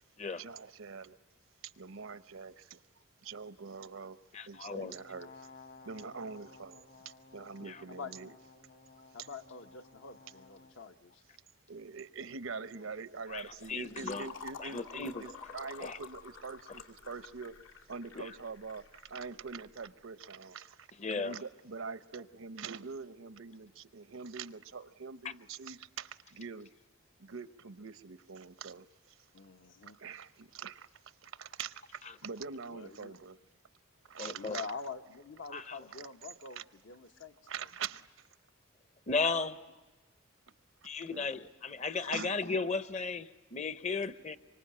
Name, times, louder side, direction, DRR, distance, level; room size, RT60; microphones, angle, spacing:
voice 1, 0.3-1.2 1.8-2.8 3.2-4.2 4.5-5.3 5.9-6.8 7.3-8.3 11.7-17.5 17.9-18.8 19.1-20.8 21.1-26.7 27.2-28.8 30.0-30.9 31.2-33.4 34.1-34.7 35.9-36.1 36.6-36.7 37.5-38.0 41.1-41.3 42.0-42.4, right 5 dB, 80° right, 0.8 m, -44 dB
voice 2, 4.3-4.9 7.7-7.8 13.3-14.3 14.6-15.3 15.8-16.0 18.1-18.3 21.0-21.4 34.2-34.6 35.5-35.8 39.1-39.6 40.8-44.4, left 4 dB, 35° left, 0.8 m, -35 dB
Brass instrument, 5.0-10.8, left 4 dB, 50° left, 1.5 m, -56 dB
voice 3, 9.1-11.2 29.3-30.0 32.7-33.2 34.2-37.7, left 4 dB, 65° left, 0.9 m, -46 dB
Fill (with liquid), 13.3-19.7, left 4 dB, 80° left, 2.3 m, -49 dB
26.0 x 24.5 x 8.7 m
head